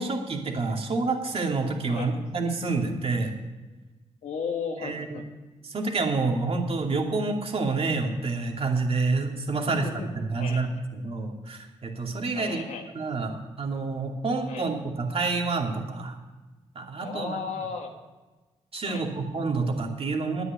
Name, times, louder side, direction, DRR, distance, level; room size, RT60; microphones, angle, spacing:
voice 1, 0.0-3.3 4.8-5.2 5.6-9.9 10.1-12.6 13.0-16.2 16.7-17.4 18.7-20.4, right 3 dB, 50° right, 2 dB, 2.4 m, -28 dB
voice 2, 4.2-5.2 9.7-10.1 10.4-10.7 12.4-12.9 14.5-14.7 17.0-17.9 18.9-19.0, left 5 dB, 75° left, 3 dB, 1.6 m, -35 dB
9.5 x 9.0 x 9.2 m, 1.2 s
cardioid pair, 65°, 12 cm